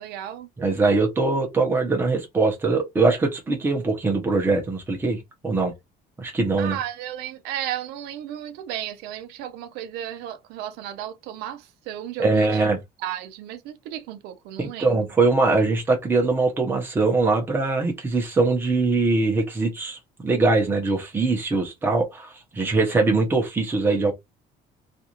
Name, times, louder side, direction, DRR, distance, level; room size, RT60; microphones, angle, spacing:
voice 1, 0.0-0.5 6.6-12.6 13.0-15.0, right 11 dB, 90° right, 0.6 m, -34 dB
voice 2, 0.6-5.7 6.2-6.8 12.2-12.8 14.6-24.1, right 3 dB, 15° right, 0.8 m, -22 dB
2.5 x 2.4 x 2.9 m
cardioid pair, 170°, 16 cm